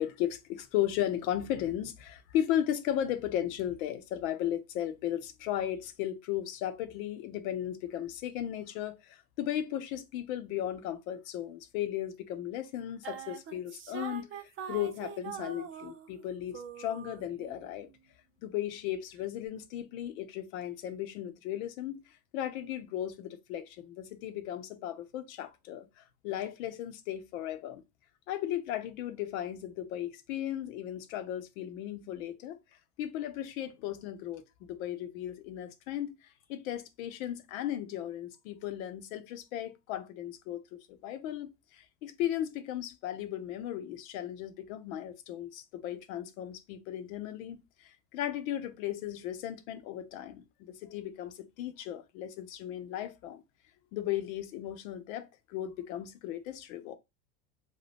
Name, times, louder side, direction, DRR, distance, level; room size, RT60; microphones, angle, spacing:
voice 1, 0.0-17.9 18.4-22.0 22.3-27.8 28.3-32.6 33.0-36.2 36.5-40.6 41.0-53.4 53.9-57.0, left 11 dB, 75° left, 0.7 m, -36 dB
sound 1, 13.0-16.3 16.5-17.7, right 8 dB, 30° right, 0.5 m, -43 dB
2.7 x 2.2 x 3.3 m
supercardioid pair, 105°, 42 cm